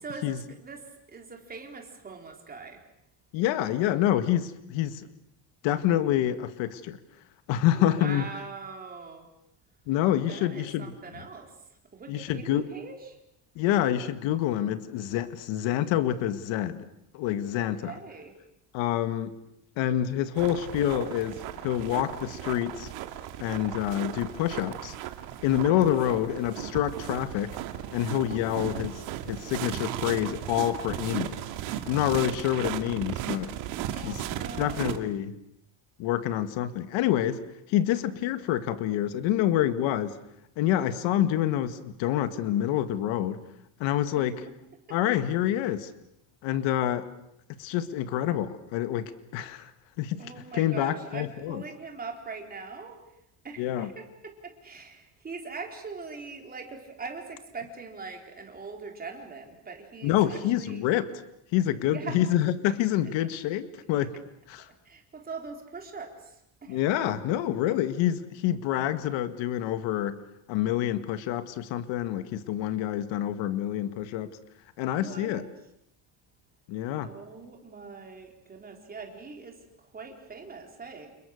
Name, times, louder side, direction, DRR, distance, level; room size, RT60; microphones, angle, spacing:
voice 1, 0.0-2.9 7.7-9.3 10.3-13.2 17.6-18.3 25.5-25.6 28.3-28.6 33.9-35.2 44.2-44.5 44.9-45.0 50.2-60.8 61.8-62.2 64.6-66.8 75.0-75.5 77.0-81.1, right 4 dB, 20° right, 4.1 m, -42 dB
voice 2, 3.3-5.1 5.6-7.0 7.5-8.3 9.9-10.9 12.1-12.7 13.6-16.9 17.1-17.9 18.7-19.3 19.8-22.9 23.4-25.0 25.4-27.6 27.9-28.9 29.3-31.4 31.9-33.5 33.9-34.2 34.6-35.3 36.0-37.4 37.7-40.2 40.6-43.4 43.8-44.4 44.9-45.9 46.4-47.1 47.6-49.7 50.0-50.3 50.6-51.6 53.6-53.9 60.0-61.1 61.5-64.1 64.5-64.7 66.7-70.2 70.5-74.4 74.8-75.4 76.7-77.1, left 12 dB, 70° left, 1.9 m, -27 dB
sound 1, 20.4-35.0, right 12 dB, 70° right, 2.5 m, -36 dB
29.5 x 29.0 x 6.6 m
cardioid pair, 175°, 47 cm